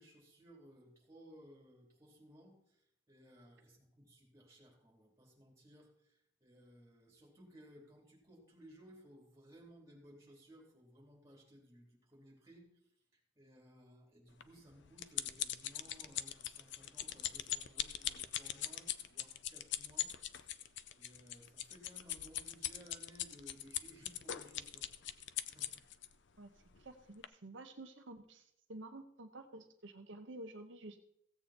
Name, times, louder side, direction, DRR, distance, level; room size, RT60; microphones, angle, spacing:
voice 1, 0.0-12.7 13.3-25.0 25.4-25.7, equal, 15° right, -1 dB, 3.3 m, -60 dB
sound 1, 14.4-26.1 26.7-26.9 27.2-27.3, left 12 dB, 65° left, 0.6 m, -41 dB
voice 2, 26.8-31.0, right 2 dB, 75° right, 4 dB, 0.9 m, -51 dB
16.0 x 8.0 x 4.3 m, 0.71 s
head